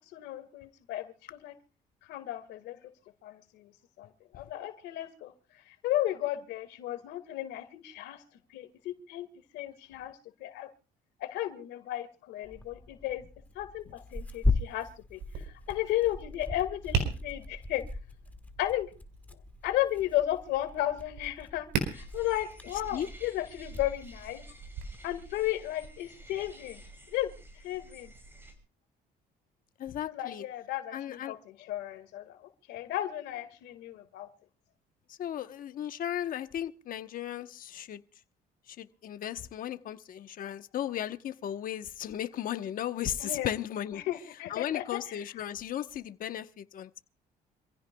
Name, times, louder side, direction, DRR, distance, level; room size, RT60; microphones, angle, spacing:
voice 1, 0.1-1.5 2.0-2.9 3.2-3.7 4.0-5.3 5.7-8.2 8.5-9.3 9.5-10.7 11.2-13.2 13.6-17.8 18.6-18.9 19.6-24.4 25.0-26.8 27.1-27.3 27.6-28.1 30.1-32.4 32.7-34.3 43.2-43.5 43.9-45.3, left 14 dB, 85° left, 1.8 m, -34 dB
Tearing, 12.4-25.1, left 3 dB, 10° left, 1.5 m, -38 dB
Tap, 15.1-24.8, right 6 dB, 90° right, 4.5 m, -39 dB
sound 1, 21.9-28.5, right 1 dB, 15° right, 5.7 m, -50 dB
voice 2, 29.8-30.4 30.9-31.3 35.1-38.0 38.7-44.0 44.5-47.0, left 11 dB, 55° left, 1.0 m, -36 dB
27.0 x 16.0 x 2.3 m
cardioid pair, 110°, 17 cm